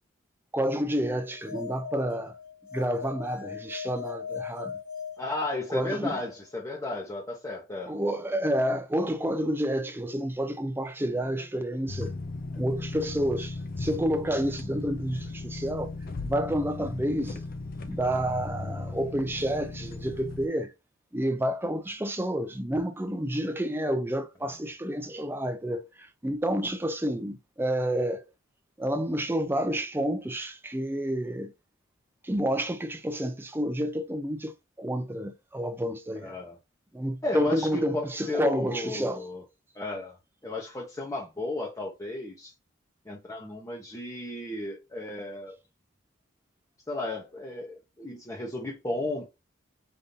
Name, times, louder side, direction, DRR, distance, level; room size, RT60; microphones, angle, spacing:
voice 1, 0.5-2.3 2.7-4.7 5.7-6.2 7.9-12.1 12.6-15.9 16.2-17.4 17.8-20.7 21.1-25.9 26.2-28.2 28.8-31.5 32.2-36.4 36.9-39.2, equal, 10° right, 0.5 m, -29 dB
sound 1, 1.2-6.0, left 6 dB, 90° left, 1.6 m, -40 dB
voice 2, 5.2-7.9 36.2-36.6 37.2-39.4 39.8-40.1 40.4-42.5 43.1-45.6 46.9-49.3, left 2 dB, 15° left, 0.8 m, -34 dB
sound 2, 11.9-20.5, left 3 dB, 45° left, 0.5 m, -37 dB
5.1 x 2.6 x 2.7 m
head